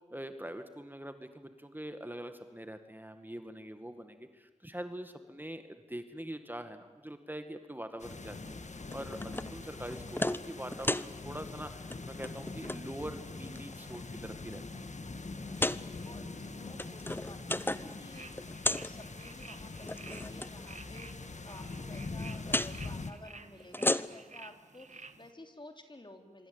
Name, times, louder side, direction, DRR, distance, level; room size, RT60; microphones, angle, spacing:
voice 1, 0.1-14.8, right 1 dB, 15° right, 8 dB, 1.9 m, -44 dB
sound 1, 8.0-23.1, left 3 dB, 65° left, 1.7 m, -43 dB
sound 2, 8.9-9.5 9.9-10.4 10.7-11.1 11.8-12.0 12.2-12.8 13.4-14.0 14.5-14.6 15.5-15.8 16.6-18.0 18.2-18.9 19.8-20.5 22.5-22.7 23.6-24.3, left 1 dB, 15° left, 0.8 m, -33 dB
sound 3, 15.3-25.3, right 4 dB, 70° right, 1.5 m, -53 dB
voice 2, 15.6-26.5, left 1 dB, 40° left, 5 dB, 3.4 m, -52 dB
26.0 x 25.0 x 8.9 m, 1.2 s
wide cardioid pair, 50°, 13 cm